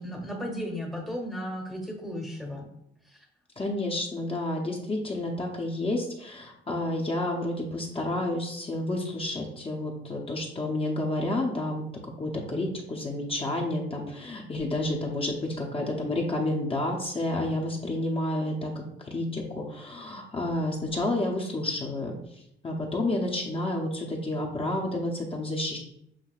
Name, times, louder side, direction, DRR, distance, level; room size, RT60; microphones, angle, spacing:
voice 1, 0.0-2.7 3.0-3.2, equal, 5° left, 0 dB, 0.9 m, -35 dB
voice 2, 3.6-11.8 12.2-25.8, left 1 dB, 30° left, -1 dB, 0.8 m, -30 dB
7.4 x 2.7 x 2.4 m, 0.76 s
cardioid pair, 90°, 20 cm